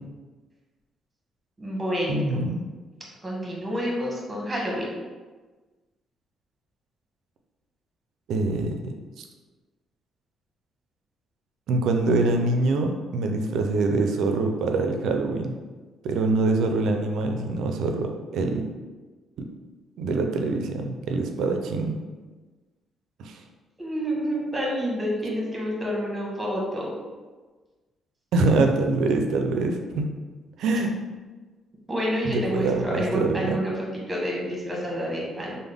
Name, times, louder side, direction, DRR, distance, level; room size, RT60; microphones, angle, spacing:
voice 1, 1.6-2.4 3.2-4.9 23.8-27.0 31.9-35.6, equal, 20° right, -2 dB, 1.0 m, -29 dB
voice 2, 2.1-2.6 8.3-9.3 11.7-15.5 16.0-18.6 20.0-22.0 23.2-23.4 28.3-30.1 30.6-30.9 32.2-33.6, right 3 dB, 80° right, 4 dB, 0.4 m, -24 dB
3.4 x 2.0 x 3.4 m, 1.3 s
cardioid pair, 90°, 0 cm